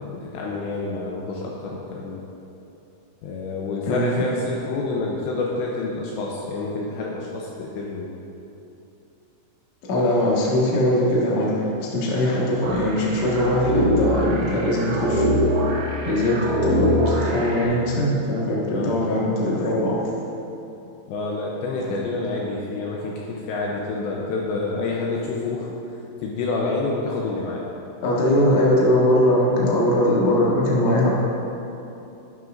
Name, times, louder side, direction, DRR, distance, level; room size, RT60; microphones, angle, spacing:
voice 1, 0.0-2.2 3.2-8.1 18.7-18.9 21.1-25.8 26.2-27.6, left 3 dB, 80° left, -3 dB, 2.7 m, -28 dB
voice 2, 3.9-4.2 9.9-15.7 16.0-20.0 28.0-31.1, left 1 dB, 60° left, -5 dB, 1.9 m, -21 dB
sound 1, 12.6-17.6, equal, 65° right, 2.7 m, -23 dB
12.0 x 11.0 x 2.6 m, 2.9 s
omnidirectional pair, 5.6 m